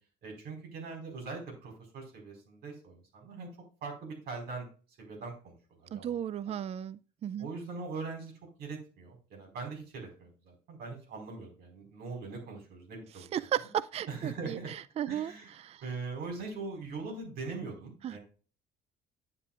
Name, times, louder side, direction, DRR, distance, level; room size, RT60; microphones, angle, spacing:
voice 1, 0.2-3.5 3.8-4.7 5.0-6.2 6.4-6.5 7.4-8.3 8.6-13.2 14.1-14.7 15.1-15.6 15.8-18.2, right 4 dB, 70° right, 4.7 m, -41 dB
voice 2, 5.9-7.5 13.3-15.3 15.6-15.8 18.0-18.2, right 10 dB, 40° right, 0.4 m, -35 dB
9.6 x 8.1 x 2.4 m
cardioid pair, 110°, 17 cm